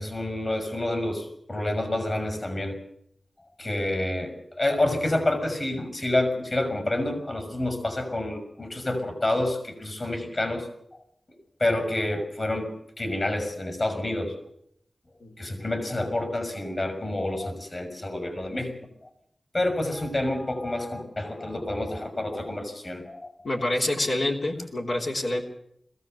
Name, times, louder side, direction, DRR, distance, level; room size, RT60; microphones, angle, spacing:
voice 1, 0.0-2.8 3.6-10.7 11.6-14.4 15.4-18.7 19.5-23.2, left 1 dB, 50° left, 7 dB, 6.2 m, -28 dB
voice 2, 23.4-25.4, left 1 dB, 80° left, -1 dB, 3.6 m, -27 dB
22.0 x 16.5 x 7.9 m, 0.72 s
cardioid pair, 45°, 0 cm